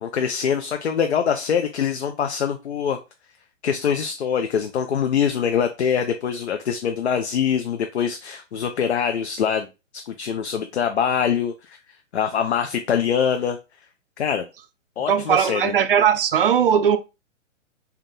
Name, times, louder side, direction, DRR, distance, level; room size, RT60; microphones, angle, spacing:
voice 1, 0.0-3.0 3.6-9.7 9.9-11.8 12.1-13.6 14.2-14.5 15.0-15.7, left 7 dB, 60° left, 0.6 m, -24 dB
voice 2, 15.1-17.0, right 8 dB, 45° right, 0.5 m, -18 dB
3.6 x 2.9 x 3.6 m
figure-of-eight pair, 125°, 38 cm